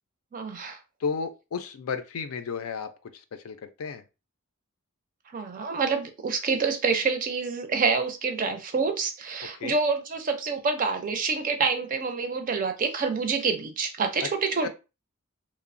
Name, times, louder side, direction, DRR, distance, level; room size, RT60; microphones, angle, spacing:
voice 1, 0.3-0.8 5.3-14.7, right 4 dB, 40° right, 6 dB, 0.4 m, -27 dB
voice 2, 1.0-4.0 9.5-9.8 14.2-14.3 14.6-14.7, left 5 dB, 75° left, 10 dB, 0.4 m, -33 dB
2.9 x 2.0 x 2.5 m, 0.29 s
head